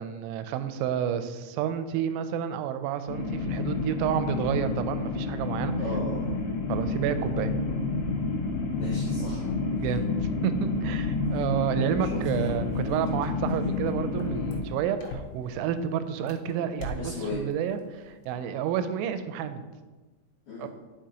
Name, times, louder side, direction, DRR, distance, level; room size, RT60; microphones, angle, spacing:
voice 1, 0.0-5.7 6.7-7.5 9.7-10.1 10.4-19.6 20.6-20.7, right 9 dB, 90° right, 11 dB, 3.2 m, -30 dB
sound 1, 3.1-14.6, left 3 dB, 70° left, 2.3 m, -29 dB
voice 2, 5.8-6.3 8.8-9.4 9.8-9.9 12.1-12.2 17.0-17.4 20.5-20.7, left 2 dB, 55° left, -9 dB, 2.8 m, -35 dB
sound 2, 11.8-15.7 16.2-17.7 18.0-18.4, left 2 dB, 85° left, 3.6 m, -41 dB
10.0 x 5.9 x 2.9 m, 1.3 s
omnidirectional pair, 5.9 m